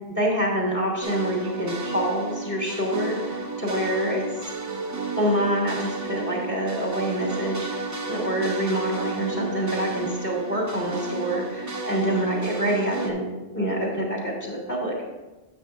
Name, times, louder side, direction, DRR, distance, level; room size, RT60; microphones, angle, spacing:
voice 1, 0.1-4.5 5.2-13.2 13.5-15.1, equal, 15° left, -4 dB, 1.9 m, -26 dB
sound 1, 1.0-13.1, right 3 dB, 20° right, 0.6 m, -32 dB
9.8 x 7.9 x 2.4 m, 1.1 s
omnidirectional pair, 1.0 m